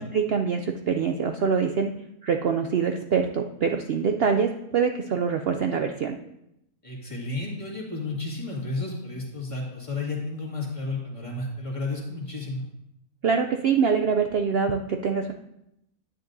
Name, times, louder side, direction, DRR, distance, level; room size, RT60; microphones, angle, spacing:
voice 1, 0.0-1.9 2.2-6.2 13.2-15.3, right 6 dB, 80° right, 5 dB, 0.5 m, -24 dB
voice 2, 6.8-12.6, left 2 dB, 20° left, -4 dB, 2.0 m, -32 dB
10.0 x 9.5 x 2.6 m, 0.83 s
omnidirectional pair, 1.6 m